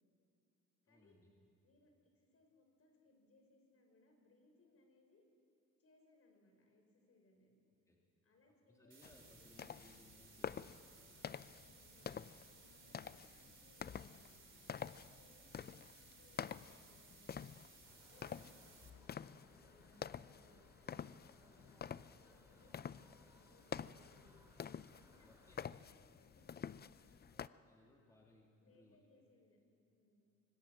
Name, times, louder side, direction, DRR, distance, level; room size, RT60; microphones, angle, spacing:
voice 1, 0.9-1.3 7.9-8.0 8.5-11.6 20.4-20.6 22.9-23.1 25.2-25.5 26.6-29.0, left 1 dB, 10° left, -1 dB, 3.3 m, -67 dB
voice 2, 1.6-5.2 5.8-7.6 8.2-9.0 11.6-12.2 12.5-14.4 14.9-17.5 17.9-21.8 22.2-24.4 24.9-27.3 27.8-28.3 28.6-29.6 29.9-30.2, left 2 dB, 50° left, 2 dB, 6.1 m, -71 dB
sound 1, 8.9-18.9, right 5 dB, 40° right, 3.5 m, -63 dB
sound 2, 9.0-27.5, left 7 dB, 35° left, 0.5 m, -49 dB
sound 3, 17.8-25.5, right 1 dB, 10° right, 5.1 m, -68 dB
24.5 x 20.0 x 7.6 m, 2.8 s
cardioid pair, 90°, 30 cm